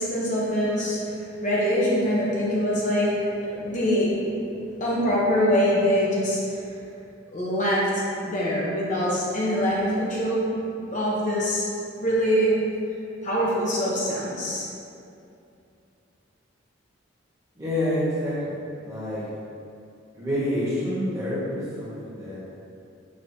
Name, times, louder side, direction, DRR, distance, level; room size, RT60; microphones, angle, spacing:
voice 1, 0.0-3.2 3.5-4.1 4.8-6.5 7.3-10.5 10.8-11.6 12.0-12.6 13.2-14.7, equal, 40° left, -6 dB, 0.9 m, -24 dB
voice 2, 17.5-19.2 20.1-22.4, left 1 dB, 15° right, -11 dB, 1.4 m, -28 dB
6.2 x 3.0 x 2.7 m, 2.6 s
head